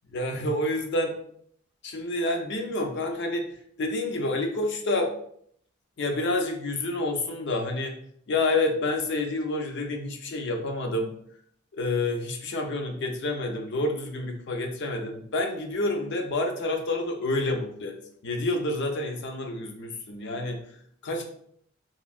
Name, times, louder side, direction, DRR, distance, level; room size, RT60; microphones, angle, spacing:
voice 1, 0.1-1.2 1.8-5.1 6.0-8.0 8.3-11.1 11.7-17.9 18.2-20.6 21.0-21.3, left 2 dB, 55° left, 3 dB, 0.5 m, -28 dB
3.0 x 2.5 x 2.4 m, 0.65 s
head